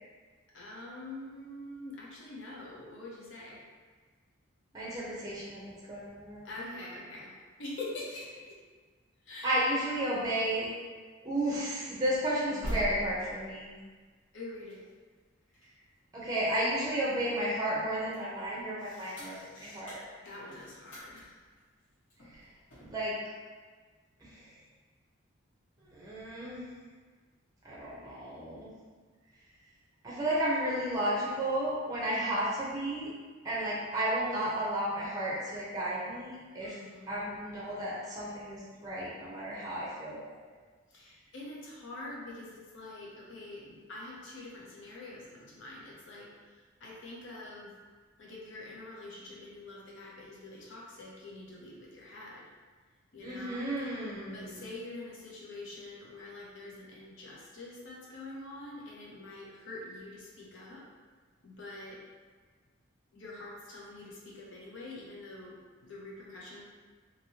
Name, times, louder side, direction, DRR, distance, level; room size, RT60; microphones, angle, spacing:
voice 1, 0.5-3.6 6.4-7.3 7.6-8.6 9.3-9.5 14.3-14.8 18.8-19.9 20.2-21.4 32.3-32.4 36.6-37.1 40.9-46.3 46.8-47.7 48.2-52.4 53.1-53.7 54.1-60.8 61.4-62.0 63.1-66.6, left 2 dB, 60° left, -4 dB, 0.6 m, -45 dB
voice 2, 4.7-6.6 9.4-10.7 11.2-13.8 16.1-20.0 22.3-22.4 22.8-23.2 24.2-24.5 25.8-26.7 27.6-28.7 30.0-33.1 33.4-36.8 37.1-40.3 53.2-54.7, right 1 dB, 15° right, -6 dB, 0.5 m, -33 dB
sound 1, 12.2-17.2 17.6-23.0, equal, 80° left, 1.2 m, -44 dB
2.9 x 2.7 x 2.7 m, 1.5 s
head